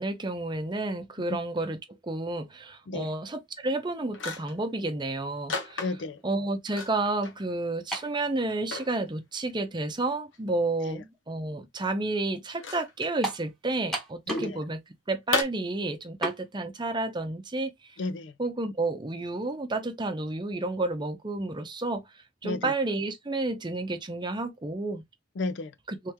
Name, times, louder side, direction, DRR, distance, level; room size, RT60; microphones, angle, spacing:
voice 1, 0.0-1.8 2.0-5.8 6.2-14.8 15.1-17.7 18.4-22.0 22.4-25.0 25.9-26.0, right 2 dB, 25° right, 0.7 m, -31 dB
sound 1, 3.6-3.7 4.1-4.7 5.5-6.2 6.7-7.4 7.8-7.9 8.4-8.9 10.3-10.4 12.5-13.1 15.3-15.4, left 3 dB, 85° left, 1.0 m, -33 dB
voice 2, 5.8-6.2 10.9-11.0 14.3-14.6 18.0-18.3 22.4-22.7 25.4-25.7, left 3 dB, 65° left, 0.4 m, -33 dB
sound 2, 7.9-8.2 9.1-9.2 13.2-13.5 13.9-14.6 14.9-15.0 16.2-16.4, right 1 dB, ahead, 1.2 m, -32 dB
3.5 x 3.3 x 2.9 m
head